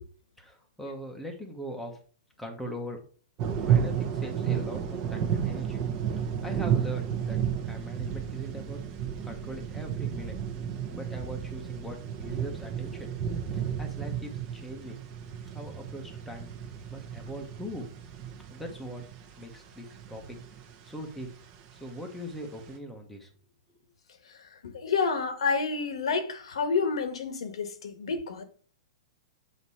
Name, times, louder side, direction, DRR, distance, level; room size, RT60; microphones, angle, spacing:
voice 1, 0.4-2.0 2.4-3.0 3.6-5.8 6.4-7.4 7.6-8.8 9.2-10.4 10.9-13.1 13.5-15.0 15.5-16.5 16.9-17.9 18.5-19.0 19.4-20.4 20.8-21.3 21.7-23.3, right 1 dB, ahead, 1.1 m, -40 dB
sound 1, 3.4-22.7, right 8 dB, 30° right, 1.2 m, -32 dB
voice 2, 24.3-28.4, left 5 dB, 85° left, 1.4 m, -29 dB
8.0 x 3.0 x 5.6 m
hypercardioid pair, 160°, 3 cm